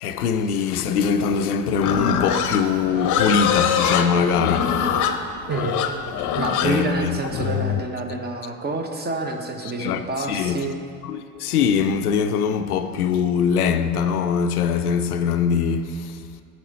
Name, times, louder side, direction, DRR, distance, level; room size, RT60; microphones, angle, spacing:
voice 1, 0.0-4.9 6.6-7.1 9.8-10.6 11.0-16.2, left 6 dB, 85° left, 0.6 m, -22 dB
Livestock farm animals working animals, 1.8-7.8, left 8 dB, 45° left, 0.8 m, -23 dB
voice 2, 6.4-10.8, right 3 dB, 20° right, 1.0 m, -28 dB
9.0 x 7.7 x 4.0 m
hypercardioid pair, 80°, 44 cm